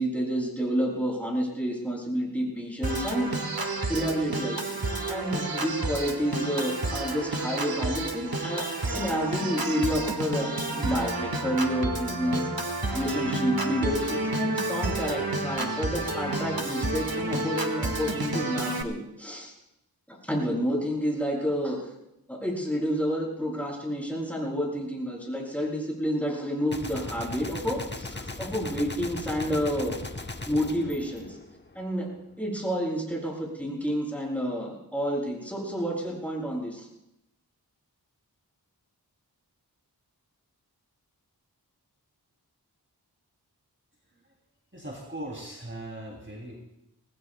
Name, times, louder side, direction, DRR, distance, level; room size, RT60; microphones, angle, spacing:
voice 1, 0.0-4.7 5.1-8.6 8.9-19.5 20.1-21.8 22.3-30.0 30.5-31.4 31.8-32.1 32.4-36.9, equal, 5° left, -3 dB, 7.2 m, -29 dB
Organ, 2.8-18.8, right 2 dB, 65° right, 1.7 m, -30 dB
Gunshot gunfire, 26.7-31.9, left 2 dB, 25° left, 1.0 m, -38 dB
voice 2, 44.7-46.5, right 1 dB, 30° right, -2 dB, 3.1 m, -39 dB
25.5 x 19.0 x 2.3 m, 0.85 s
wide cardioid pair, 40°, 39 cm